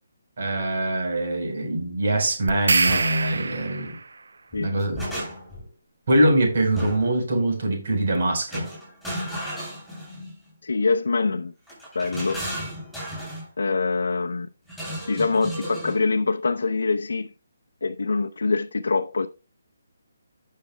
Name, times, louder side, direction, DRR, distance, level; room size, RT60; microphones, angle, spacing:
voice 1, 0.4-4.0 4.6-5.1 6.1-8.7, right 1 dB, 55° right, 4.3 m, -23 dB
sound 1, 2.5-4.1, right 4 dB, 75° right, 0.8 m, -24 dB
sound 2, 2.9-3.1 4.5-5.6 6.8-7.2 8.5-10.4 11.7-13.5 14.7-16.0, equal, ahead, 6.3 m, -33 dB
voice 2, 10.6-11.5 11.9-12.5 13.6-14.5 15.1-17.3 17.8-19.3, left 4 dB, 80° left, 0.7 m, -24 dB
17.5 x 6.7 x 2.3 m
hypercardioid pair, 160°, 0 cm